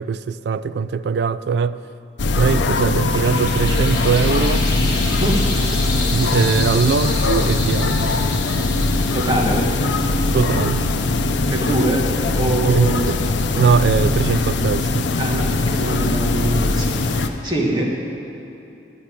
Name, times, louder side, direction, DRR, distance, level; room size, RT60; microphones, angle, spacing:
voice 1, 0.0-1.8 2.3-4.6 6.1-8.2 10.3-10.8 12.6-13.2 13.5-15.1, right 5 dB, 65° right, 14 dB, 0.3 m, -20 dB
sound 1, 2.2-17.3, left 3 dB, 85° left, 0.6 m, -20 dB
sound 2, 2.5-11.6, left 2 dB, 25° left, 2.4 m, -31 dB
voice 2, 5.2-5.5 9.1-9.7 11.5-13.0 15.2-17.8, right 1 dB, 25° right, -2 dB, 1.6 m, -23 dB
9.9 x 6.6 x 8.8 m, 2.9 s
head